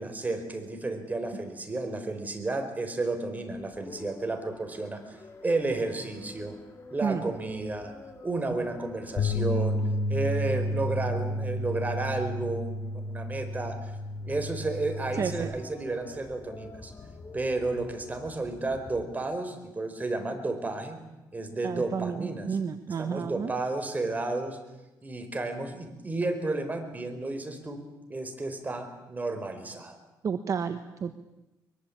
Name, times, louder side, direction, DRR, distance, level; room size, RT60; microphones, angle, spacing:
voice 1, 0.0-6.6 6.9-7.9 8.2-9.8 10.1-13.9 14.3-16.9 17.3-21.0 21.3-22.6 23.0-24.6 25.0-27.8 28.1-30.0, right 2 dB, 25° right, 6 dB, 4.9 m, -32 dB
sound 1, 3.5-19.0, left 3 dB, 35° left, 3.2 m, -49 dB
sound 2, 9.2-15.4, left 1 dB, 55° left, 4.1 m, -31 dB
voice 2, 15.2-15.5 21.6-23.5 30.2-31.2, right 6 dB, 50° right, 9 dB, 1.3 m, -31 dB
23.5 x 22.5 x 8.8 m, 1.0 s
cardioid pair, 100°, 7 cm